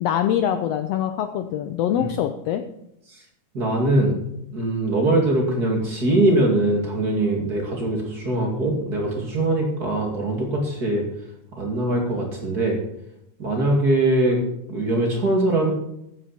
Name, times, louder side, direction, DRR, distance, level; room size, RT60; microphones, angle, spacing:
voice 1, 0.0-2.6, left 10 dB, 85° left, 7 dB, 1.4 m, -24 dB
voice 2, 3.5-4.2 4.5-11.0 11.6-12.8 13.4-14.4 14.7-15.7, right 1 dB, 30° right, 0 dB, 2.6 m, -22 dB
14.0 x 9.4 x 4.3 m, 0.83 s
omnidirectional pair, 3.7 m